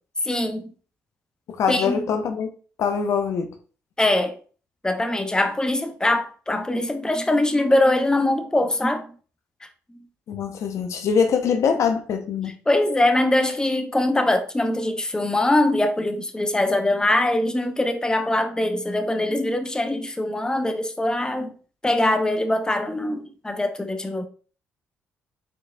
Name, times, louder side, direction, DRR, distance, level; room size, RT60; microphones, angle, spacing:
voice 1, 0.2-0.7 1.7-2.0 4.0-4.3 4.8-9.1 12.7-21.5 21.8-24.2, left 1 dB, 10° left, 0.7 m, -22 dB
voice 2, 1.5-2.5 2.8-3.5 10.3-12.5, left 6 dB, 60° left, 0.6 m, -23 dB
4.3 x 4.1 x 2.2 m
hypercardioid pair, 45°, 6 cm